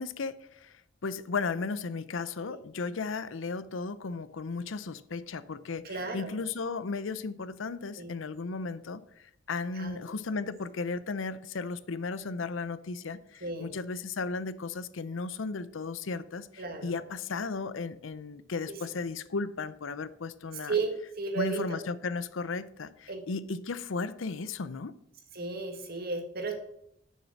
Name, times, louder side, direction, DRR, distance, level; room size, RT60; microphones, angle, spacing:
voice 1, 0.0-9.0 9.5-20.7 21.4-24.9, left 4 dB, 80° left, 0.6 m, -35 dB
voice 2, 5.8-6.4 8.0-8.2 9.8-10.0 13.4-13.7 16.6-17.0 18.7-18.8 20.7-21.8 23.1-23.2 25.3-26.6, right 4 dB, 50° right, 1.7 m, -34 dB
6.7 x 6.4 x 7.2 m
head